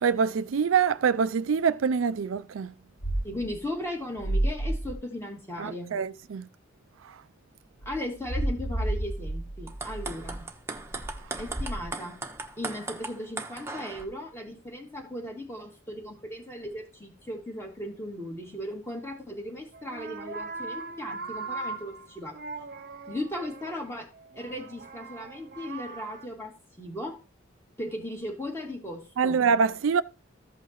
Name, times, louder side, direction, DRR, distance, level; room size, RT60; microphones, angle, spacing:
voice 1, 0.0-2.7 5.6-6.5 7.0-7.1 29.2-30.0, right 6 dB, 90° right, 0.4 m, -25 dB
sound 1, 3.0-3.5 4.2-4.9 7.8-10.4, right 1 dB, 35° left, 1.4 m, -30 dB
voice 2, 3.2-5.9 7.9-10.4 11.4-12.1 12.6-22.4 23.1-24.1 24.3-27.2 27.8-29.4, left 1 dB, 15° left, 2.5 m, -37 dB
sound 2, 9.5-14.1, right 2 dB, 15° right, 1.1 m, -37 dB
sound 3, 19.7-26.2, right 3 dB, 55° right, 0.9 m, -40 dB
14.5 x 5.6 x 3.0 m
head